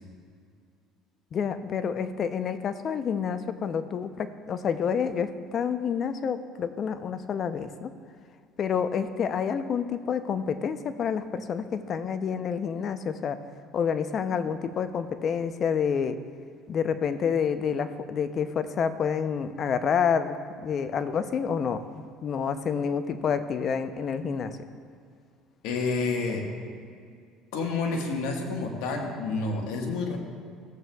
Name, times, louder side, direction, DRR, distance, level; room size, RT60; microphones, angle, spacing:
voice 1, 1.3-7.9 8.6-13.4 13.7-16.2 16.7-20.4 20.6-21.8 22.2-24.6, left 7 dB, 45° left, 11 dB, 0.5 m, -28 dB
voice 2, 25.6-26.4 27.5-30.2, left 3 dB, 75° left, 1 dB, 1.4 m, -29 dB
15.0 x 7.6 x 2.3 m, 2.2 s
supercardioid pair, 95°, 0 cm